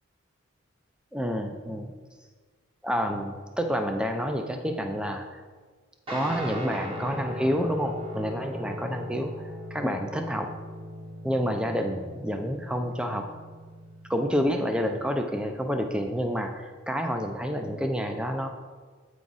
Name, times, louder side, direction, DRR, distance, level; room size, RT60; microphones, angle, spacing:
voice 1, 1.1-1.9 2.8-5.4 6.1-9.3 9.7-10.5 11.2-13.2 14.1-18.5, equal, 5° right, 5 dB, 0.4 m, -28 dB
Guitar, 6.1-14.9, left 1 dB, 25° right, 1.0 m, -39 dB
8.4 x 4.8 x 4.0 m, 1.4 s
head